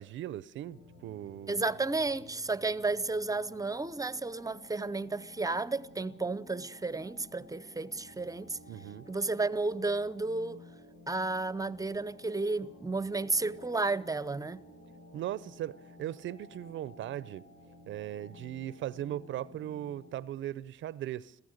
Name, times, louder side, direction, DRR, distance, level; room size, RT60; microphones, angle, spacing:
voice 1, 0.0-1.6 8.7-9.1 15.1-17.5 17.9-21.4, right 12 dB, 75° right, 0.7 m, -38 dB
sound 1, 0.7-20.3, left 2 dB, 75° left, 6.6 m, -54 dB
voice 2, 1.5-8.6 9.1-10.6 11.1-14.6, right 3 dB, 15° right, 0.8 m, -32 dB
26.5 x 15.5 x 6.5 m
cardioid pair, 90°, 20 cm